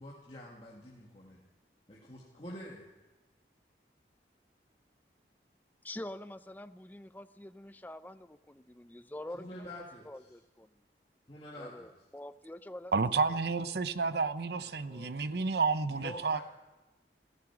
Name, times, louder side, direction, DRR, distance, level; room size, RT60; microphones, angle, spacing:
voice 1, 0.0-1.4 1.9-2.9 9.3-10.1 11.3-11.9 14.6-15.4 15.9-16.4, left 1 dB, 30° left, 2.1 m, -47 dB
voice 2, 5.8-10.7 11.6-12.9 13.3-13.4, left 1 dB, 10° left, 0.4 m, -46 dB
voice 3, 12.9-16.4, right 4 dB, 70° right, 0.7 m, -30 dB
16.5 x 14.5 x 6.0 m
head